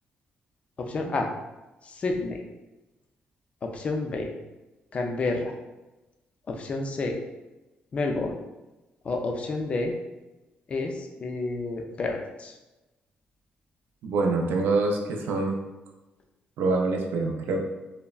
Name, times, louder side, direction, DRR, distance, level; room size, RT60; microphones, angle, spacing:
voice 1, 0.8-1.3 1.8-2.4 3.6-4.3 4.9-5.5 6.5-7.2 7.9-8.3 9.0-9.9 10.7-12.5, left 3 dB, 35° left, 3 dB, 0.3 m, -29 dB
voice 2, 14.0-15.6 16.6-17.6, right 3 dB, 90° right, 2 dB, 0.4 m, -25 dB
3.3 x 2.0 x 2.3 m, 1.0 s
cardioid pair, 135°, 4 cm